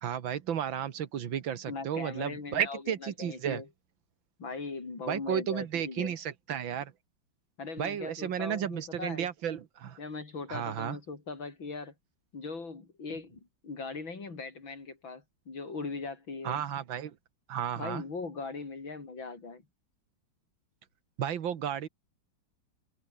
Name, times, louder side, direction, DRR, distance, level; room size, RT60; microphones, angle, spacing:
voice 1, 0.0-3.6 5.1-6.9 7.8-10.0 10.5-11.0 16.4-17.2 17.5-18.0 21.2-21.9, right 9 dB, 85° right, 2.2 m, -33 dB
voice 2, 1.7-3.7 4.4-6.1 7.6-9.3 10.0-11.9 12.3-16.6 17.8-19.6, left 4 dB, 85° left, 5.1 m, -40 dB
omnidirectional pair, 2.1 m